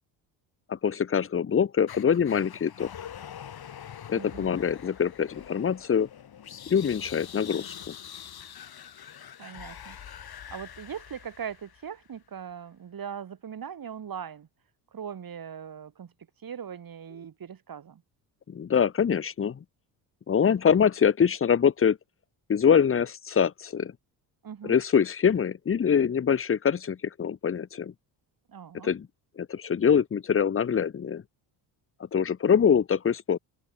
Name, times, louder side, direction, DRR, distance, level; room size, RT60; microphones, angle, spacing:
voice 1, 0.7-2.9 4.1-6.1 6.7-7.9 18.5-19.6 20.3-22.0 22.5-23.9 24.6-27.9 28.8-29.1 29.4-31.2 32.1-33.4, left 7 dB, 30° left, 1.0 m, -24 dB
sound 1, 1.9-12.0, left 9 dB, 50° left, 4.3 m, -44 dB
voice 2, 4.1-4.5 9.4-10.0 10.5-14.5 14.9-16.1 16.4-18.0 24.4-24.8 28.5-28.9, right 8 dB, 45° right, 5.5 m, -40 dB
supercardioid pair, 75°, 46 cm